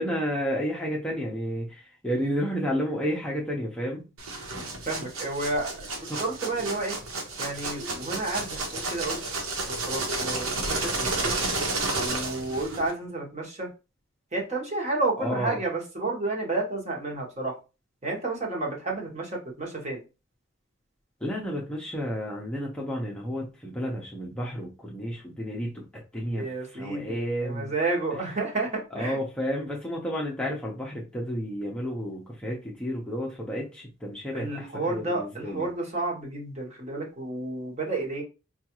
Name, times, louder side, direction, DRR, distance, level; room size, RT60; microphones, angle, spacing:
voice 1, 0.0-4.0 6.1-6.2 15.2-15.6 21.2-25.8 26.1-27.7 28.9-35.7, equal, 5° left, -3 dB, 0.6 m, -31 dB
sound 1, 4.2-12.9, right 2 dB, 85° right, 1.0 m, -31 dB
voice 2, 4.9-5.9 6.2-6.9 7.4-9.2 9.9-10.5 10.8-11.3 11.9-13.7 14.3-17.6 18.0-20.0 26.4-29.2 34.3-38.2, right 2 dB, 30° right, -1 dB, 1.0 m, -31 dB
4.9 x 2.3 x 2.9 m, 0.30 s
head